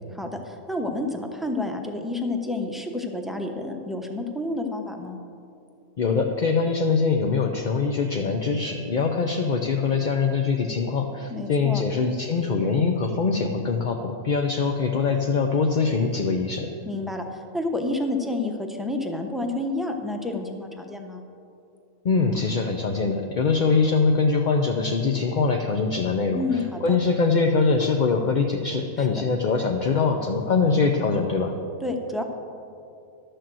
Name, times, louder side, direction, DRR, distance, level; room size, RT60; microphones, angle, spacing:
voice 1, 0.1-5.2 11.3-11.8 16.8-21.2 26.3-26.9 29.0-29.1 31.8-32.2, left 2 dB, ahead, 3 dB, 0.8 m, -29 dB
voice 2, 6.0-16.7 22.0-31.5, left 4 dB, 45° left, 3 dB, 0.6 m, -23 dB
12.0 x 6.7 x 7.6 m, 2.5 s
omnidirectional pair, 1.4 m